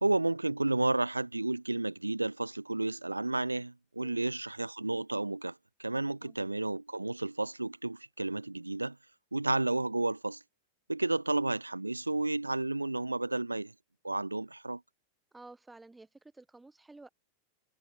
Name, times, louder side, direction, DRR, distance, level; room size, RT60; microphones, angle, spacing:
voice 1, 0.0-9.0 9.3-10.4 10.9-13.7 14.0-14.8, right 2 dB, 85° right, 0.5 m, -32 dB
voice 2, 4.0-4.4 6.2-6.4 15.3-17.1, right 2 dB, 10° right, 1.4 m, -53 dB
figure-of-eight pair, 90°, 0 cm